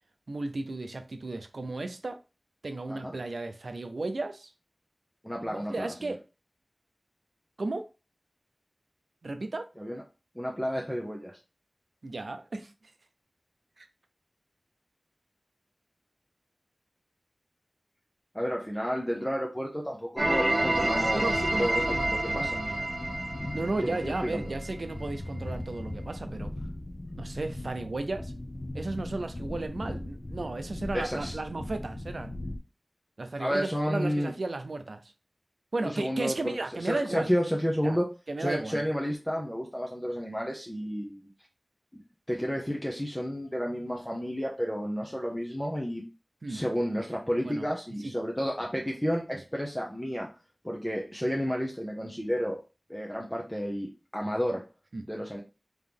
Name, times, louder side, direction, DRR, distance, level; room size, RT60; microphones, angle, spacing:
voice 1, 0.3-2.2 2.6-4.5 5.4-6.2 7.6-7.9 9.2-9.7 12.0-12.7 13.8-13.9 21.1-22.9 23.5-26.5 27.2-28.3 28.7-32.4 33.2-35.1 35.7-37.3 37.8-38.0 38.3-38.8 46.4-46.6 47.4-47.7 48.0-48.1 54.9-55.0, right 2 dB, 85° right, 0.4 m, -34 dB
voice 2, 5.2-6.2 9.8-10.0 10.3-11.3 18.3-21.3 21.6-22.6 23.8-24.5 30.9-31.4 33.4-34.3 35.8-38.1 38.4-41.3 42.3-46.0 46.5-50.3 50.6-52.6 52.9-54.6 55.1-55.4, equal, 10° left, 0.8 m, -31 dB
sound 1, 20.2-32.6, left 1 dB, 45° left, 0.6 m, -38 dB
sound 2, 20.2-25.0, right 1 dB, 50° right, 0.9 m, -29 dB
3.7 x 3.0 x 3.5 m
wide cardioid pair, 55°, 0 cm